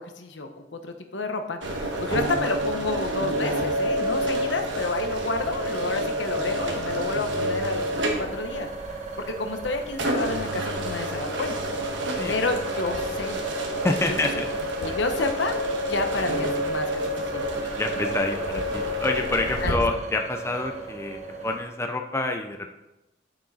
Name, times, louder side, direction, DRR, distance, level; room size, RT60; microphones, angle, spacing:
voice 1, 0.0-1.6 2.0-8.7 9.4-11.5 12.3-13.4 14.1-14.2 14.8-15.6 15.9-17.5 19.6-19.8, left 3 dB, 80° left, 6 dB, 1.1 m, -30 dB
sound 1, 1.6-19.7, equal, 85° right, 1.4 m, -29 dB
sound 2, 7.8-21.6, right 4 dB, 40° right, 1.3 m, -37 dB
voice 2, 12.2-12.6 13.8-14.5 14.9-15.0 17.6-22.7, left 2 dB, 15° left, 4 dB, 0.6 m, -28 dB
9.1 x 7.5 x 4.2 m, 0.97 s
head